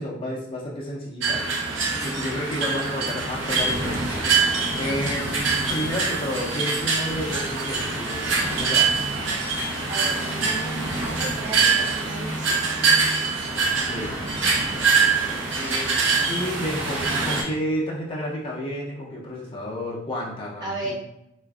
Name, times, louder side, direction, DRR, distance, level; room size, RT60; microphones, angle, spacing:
voice 1, 0.0-1.4 1.8-9.1 13.5-20.9, equal, 25° left, -4 dB, 0.5 m, -32 dB
sound 1, 1.2-17.4, right 4 dB, 65° right, 0.6 m, -24 dB
voice 2, 9.9-12.8 20.6-20.9, right 3 dB, 20° right, -5 dB, 0.7 m, -35 dB
3.8 x 2.4 x 2.3 m, 0.84 s
head